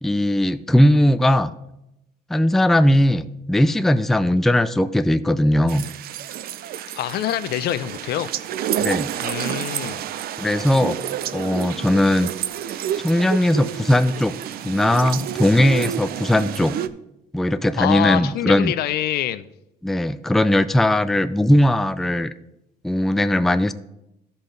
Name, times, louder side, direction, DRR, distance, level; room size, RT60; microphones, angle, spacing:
voice 1, 0.0-1.5 2.3-5.9 8.8-9.1 10.4-11.0 11.3-12.3 13.0-14.3 14.6-16.8 17.3-18.7 19.8-22.3 22.8-23.7, left 1 dB, ahead, 12 dB, 0.4 m, -19 dB
sound 1, 5.7-16.9, right 10 dB, 65° right, 0.5 m, -29 dB
voice 2, 7.0-8.3 9.2-10.0 17.8-19.5, left 12 dB, 70° left, 14 dB, 0.5 m, -25 dB
13.0 x 5.5 x 3.9 m, 0.86 s
cardioid pair, 110°, 17 cm